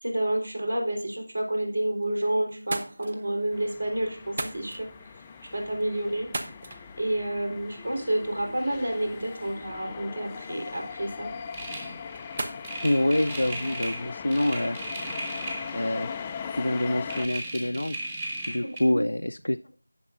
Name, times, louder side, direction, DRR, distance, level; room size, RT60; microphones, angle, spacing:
voice 1, 0.0-4.9 5.5-6.5 7.0-11.3 18.9-19.0, right 1 dB, 60° right, 2 dB, 3.8 m, -29 dB
sound 1, 1.6-2.2 2.5-14.1, right 2 dB, 30° right, 0.9 m, -42 dB
sound 2, 3.5-17.3, left 6 dB, 10° left, 0.3 m, -40 dB
sound 3, 11.5-16.3 16.5-18.8, right 2 dB, 15° right, 1.6 m, -37 dB
voice 2, 12.8-14.8 15.7-16.1 16.5-18.0 18.5-19.6, left 1 dB, 80° left, 7 dB, 0.4 m, -26 dB
18.0 x 6.6 x 2.5 m, 0.43 s
figure-of-eight pair, 170°, 0 cm